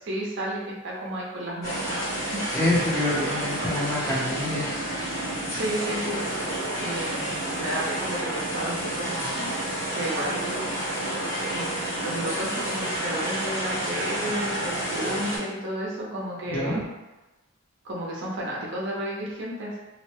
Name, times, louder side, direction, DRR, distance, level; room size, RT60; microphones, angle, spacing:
voice 1, 0.0-2.0 2.3-2.4 5.5-9.6 9.9-10.6 11.5-11.7 12.0-16.8 17.8-19.8, right 1 dB, 60° right, -4 dB, 0.7 m, -32 dB
sound 1, 1.6-15.4, right 1 dB, 45° left, 1.1 m, -30 dB
voice 2, 2.5-4.9 16.5-16.8, left 1 dB, 10° left, -7 dB, 0.6 m, -26 dB
2.7 x 2.1 x 2.9 m, 1.1 s
head